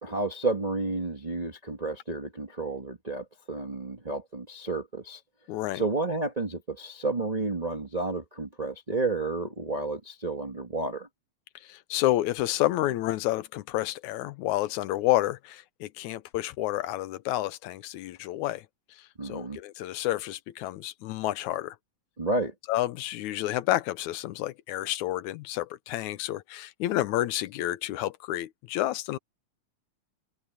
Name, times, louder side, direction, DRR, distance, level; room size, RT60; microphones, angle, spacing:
voice 1, 0.0-5.2 5.7-11.1 19.2-19.6 22.2-22.5, right 2 dB, 35° right, 0.6 m, -31 dB
voice 2, 5.5-5.8 11.6-21.8 22.7-29.2, left 15 dB, 85° left, 2.1 m, -30 dB
omnidirectional pair, 3.4 m